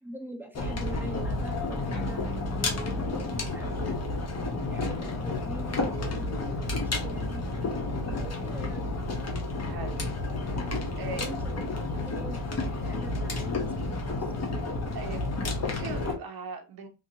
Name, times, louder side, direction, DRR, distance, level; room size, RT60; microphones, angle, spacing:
voice 1, 0.0-4.1 4.6-7.4 8.1-8.9 10.9-14.5, right 1 dB, 5° right, 0.6 m, -44 dB
sound 1, 0.6-16.1, left 2 dB, 30° left, 0.8 m, -31 dB
sound 2, 1.9-8.8, right 1 dB, 50° left, 1.2 m, -47 dB
voice 2, 9.7-10.0 10.4-11.3 14.9-15.3 15.5-16.9, right 3 dB, 50° right, 0.9 m, -39 dB
2.8 x 2.7 x 2.6 m
cardioid pair, 100°, 49 cm